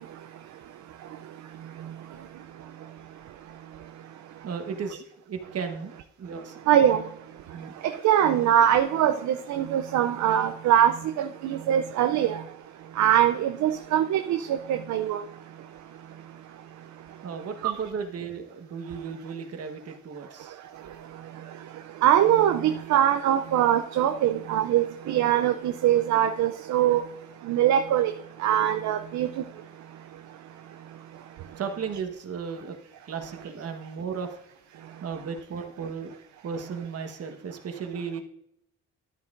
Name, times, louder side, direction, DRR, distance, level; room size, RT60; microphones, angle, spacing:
voice 1, 4.4-5.9 6.2-6.6 7.5-7.7 17.2-20.6 31.6-32.8 33.1-34.4 35.0-36.1 36.4-38.2, right 6 dB, 55° right, 1.4 m, -35 dB
voice 2, 6.7-7.0 7.8-12.4 13.0-15.2 17.6-17.7 22.0-27.0 27.5-28.1 28.4-29.3, right 11 dB, 70° right, 0.6 m, -22 dB
11.5 x 9.4 x 2.6 m
cardioid pair, 90°, 30 cm